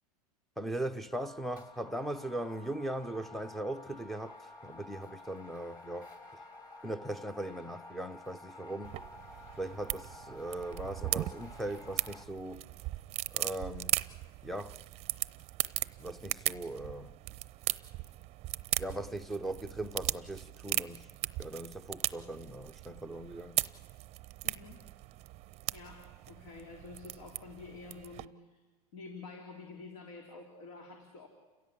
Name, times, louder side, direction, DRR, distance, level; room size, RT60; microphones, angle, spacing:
voice 1, 0.6-6.1 6.8-9.0 9.6-12.7 13.3-14.0 14.4-14.8 16.0-17.1 18.8-21.1 21.4-23.6, right 1 dB, ahead, 0.6 m, -39 dB
sound 1, 0.7-1.0 1.5-12.3, left 2 dB, 20° left, 2.7 m, -53 dB
Wind instrument woodwind instrument, 1.0-11.6, left 2 dB, 85° left, 6.9 m, -56 dB
sound 2, 8.8-28.3, right 16 dB, 35° right, 0.7 m, -38 dB
voice 2, 24.4-24.8 25.7-28.6 28.9-31.3, left 4 dB, 65° left, 3.5 m, -49 dB
29.5 x 16.5 x 8.5 m
supercardioid pair, 130°, 19 cm